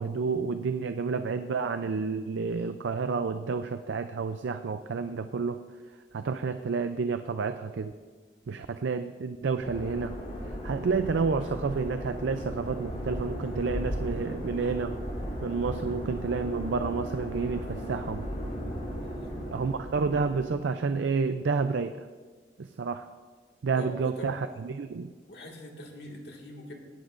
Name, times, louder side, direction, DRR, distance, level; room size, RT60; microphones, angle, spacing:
voice 1, 0.0-5.6 6.1-7.9 8.5-10.2 10.6-15.0 15.4-18.3 19.5-22.0 22.6-23.1 23.6-25.1, right 4 dB, 85° right, 9 dB, 0.4 m, -30 dB
sound 1, 9.6-20.5, equal, 40° left, 4.2 m, -36 dB
voice 2, 23.8-24.4 25.3-26.7, left 1 dB, 65° left, 0 dB, 1.9 m, -43 dB
19.0 x 11.5 x 2.5 m, 1.5 s
head